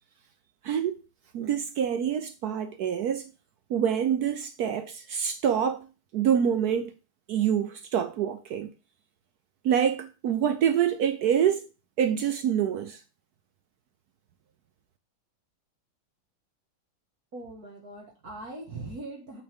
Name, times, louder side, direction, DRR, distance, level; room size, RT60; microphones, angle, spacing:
voice 1, 0.6-1.0 1.3-3.3 3.7-5.9 6.1-6.9 7.3-8.7 9.6-11.6 12.0-13.0, right 8 dB, 75° right, 0.9 m, -26 dB
voice 2, 17.3-19.4, right 2 dB, 50° right, 2.0 m, -40 dB
8.8 x 4.8 x 3.5 m
omnidirectional pair, 2.3 m